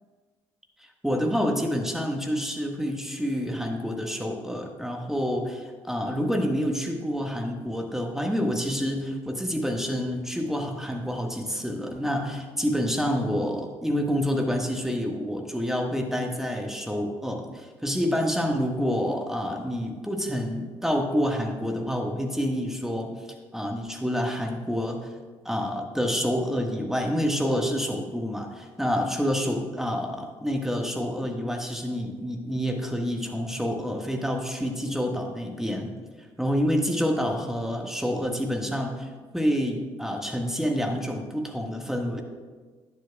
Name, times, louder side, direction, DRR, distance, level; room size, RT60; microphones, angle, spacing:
voice 1, 1.0-23.1 23.5-25.1 25.4-35.9 36.4-39.1 39.3-42.2, equal, 5° right, 3 dB, 1.5 m, -28 dB
12.0 x 10.0 x 2.3 m, 1.4 s
figure-of-eight pair, 40°, 15 cm